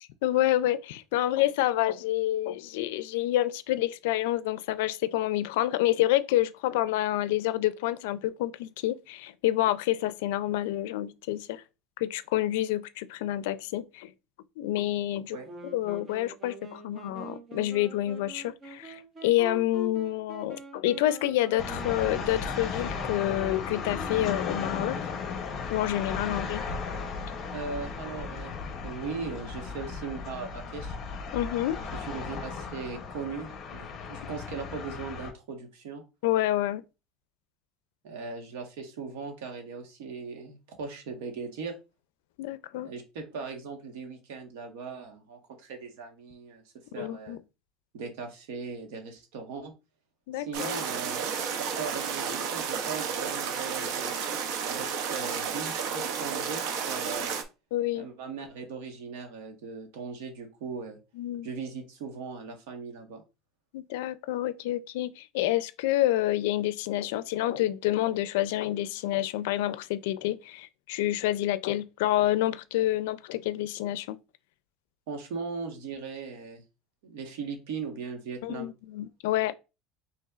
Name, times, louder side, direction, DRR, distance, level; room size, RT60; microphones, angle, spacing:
voice 1, 0.2-11.6 12.0-14.1 14.6-15.4 15.7-25.0 25.7-26.6 31.3-31.8 36.2-36.8 42.4-42.9 47.0-47.4 50.3-50.7 57.7-58.1 61.2-61.5 63.7-74.2 78.4-79.5, left 14 dB, 85° left, 0.4 m, -28 dB
Wind instrument woodwind instrument, 15.4-24.5, right 1 dB, 20° right, 0.8 m, -45 dB
sound 1, 21.6-35.3, left 5 dB, 30° left, 0.9 m, -36 dB
voice 2, 27.5-28.6 28.8-31.0 31.9-36.0 38.0-41.7 42.8-46.6 46.9-47.4 47.9-49.7 50.3-51.2 51.6-54.3 54.7-56.6 56.9-57.4 57.9-61.0 61.4-63.2 75.1-76.6 77.0-78.7, right 5 dB, 85° right, 1.3 m, -39 dB
sound 2, 50.5-57.4, right 6 dB, 65° right, 0.7 m, -32 dB
5.5 x 3.3 x 2.4 m
cardioid pair, 170°, 0 cm